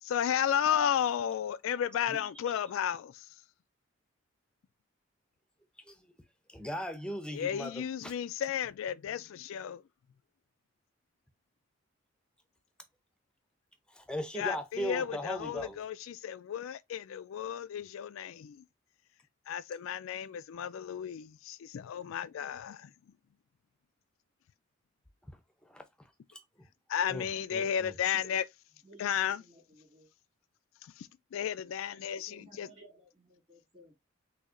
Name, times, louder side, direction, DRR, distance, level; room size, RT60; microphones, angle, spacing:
voice 1, 0.0-3.3 7.3-9.8 14.3-18.6 19.5-22.9 26.9-28.5 29.0-29.4 30.8-32.7, left 9 dB, 80° left, 0.3 m, -33 dB
voice 2, 6.5-8.1 13.9-15.8 25.6-26.4 27.1-27.9, equal, 5° left, 0.6 m, -39 dB
voice 3, 28.8-30.1 32.0-33.9, right 1 dB, 30° right, 2.2 m, -57 dB
6.3 x 2.8 x 2.5 m
head